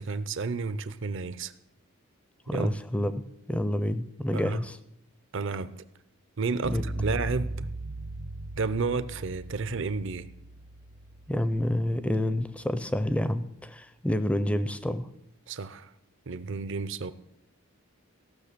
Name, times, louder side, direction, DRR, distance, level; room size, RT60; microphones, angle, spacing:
voice 1, 0.0-1.5 2.5-2.8 4.3-4.6 5.3-5.7 6.4-7.7 8.6-10.3 15.5-15.9 16.3-17.1, right 4 dB, 55° right, 15 dB, 0.6 m, -31 dB
voice 2, 2.5-3.2 3.5-4.8 6.7-6.8 11.3-15.1, left 1 dB, 5° left, 13 dB, 0.5 m, -28 dB
sound 1, 6.6-12.6, right 1 dB, 90° right, 2.1 m, -39 dB
16.0 x 6.4 x 6.8 m, 0.81 s
head